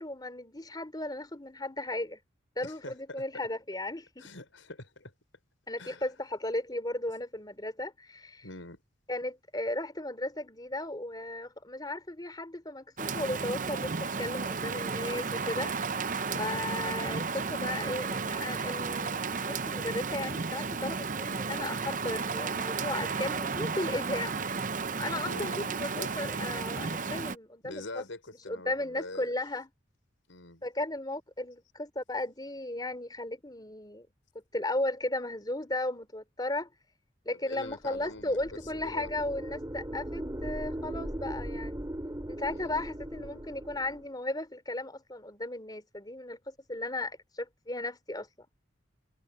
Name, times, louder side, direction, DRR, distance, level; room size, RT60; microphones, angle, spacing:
voice 1, 0.0-2.2 2.6-4.3 5.7-8.4 9.1-15.7 16.3-24.4 25.0-28.0 28.5-29.7 30.6-34.1 34.5-36.7 37.2-41.8 42.3-48.3, left 1 dB, 20° left, 3.4 m, -35 dB
voice 2, 2.6-3.2 4.2-5.1 5.8-6.0 8.4-8.8 16.3-16.7 25.3-26.1 27.6-29.3 30.3-30.6 37.3-38.4 38.7-39.1 42.5-42.8, left 2 dB, 90° left, 6.1 m, -44 dB
Rain, 13.0-27.4, right 5 dB, 45° right, 0.8 m, -33 dB
sound 1, 38.0-44.1, right 1 dB, 20° right, 3.0 m, -39 dB
head